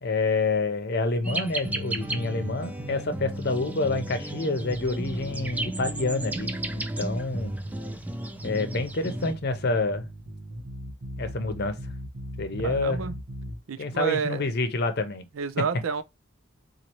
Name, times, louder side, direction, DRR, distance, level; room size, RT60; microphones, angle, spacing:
voice 1, 0.0-7.5 8.4-10.1 11.2-11.9 12.4-13.0 13.8-15.3 15.6-15.7, left 3 dB, 55° left, 0.7 m, -28 dB
sound 1, 1.2-9.3, right 1 dB, 10° right, 0.4 m, -34 dB
sound 2, 1.6-13.6, equal, 70° right, 1.1 m, -39 dB
voice 2, 12.6-13.2 13.7-14.4 15.4-16.0, right 6 dB, 90° right, 0.5 m, -29 dB
4.1 x 2.6 x 2.9 m
head